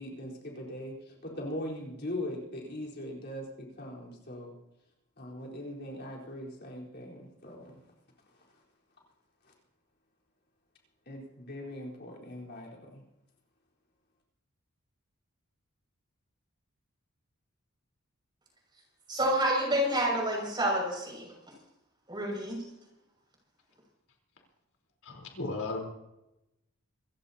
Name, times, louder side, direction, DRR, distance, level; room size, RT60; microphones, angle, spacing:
voice 1, 0.0-4.6 5.2-7.8 8.3-8.5 9.4-9.5 11.1-13.0, left 1 dB, 50° left, -2 dB, 4.2 m, -40 dB
voice 2, 19.1-21.3 22.1-22.6, right 1 dB, 20° right, 0 dB, 6.3 m, -28 dB
voice 3, 25.0-25.8, left 3 dB, 85° left, 2 dB, 4.0 m, -35 dB
27.0 x 15.5 x 2.9 m, 0.89 s
head